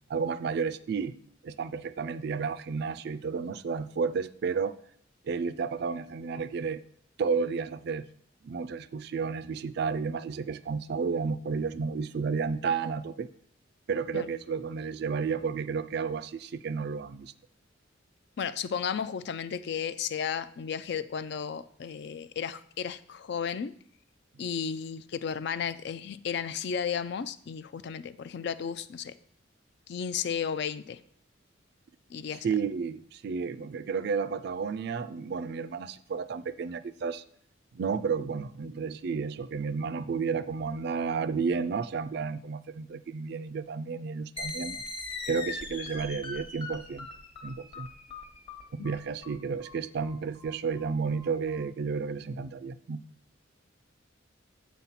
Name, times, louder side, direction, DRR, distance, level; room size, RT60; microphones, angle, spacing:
voice 1, 0.1-1.1 1.4-4.8 5.2-6.8 7.2-8.1 8.4-13.3 13.9-17.3 32.4-37.2 37.7-44.8 45.3-47.1 47.4-47.9 48.7-53.0, right 5 dB, 55° right, 14 dB, 0.3 m, -32 dB
voice 2, 18.4-23.7 24.4-29.1 29.9-31.0 32.1-32.5 48.8-48.9, left 7 dB, 60° left, 14 dB, 0.4 m, -34 dB
sound 1, 44.4-51.6, left 3 dB, 30° left, 1.0 m, -41 dB
7.3 x 4.0 x 5.8 m, 0.64 s
head